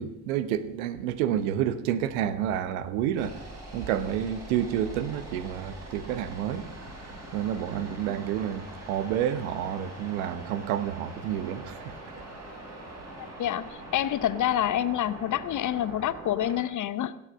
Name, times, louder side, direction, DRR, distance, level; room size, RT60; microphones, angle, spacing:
voice 1, 0.0-3.4 3.7-6.7 7.3-12.0, right 10 dB, 75° right, 0.9 m, -29 dB
sound 1, 3.2-16.6, right 1 dB, 35° right, 5.9 m, -43 dB
voice 2, 13.4-17.1, left 11 dB, 45° left, 0.8 m, -27 dB
17.0 x 8.6 x 6.3 m
figure-of-eight pair, 50°, 43 cm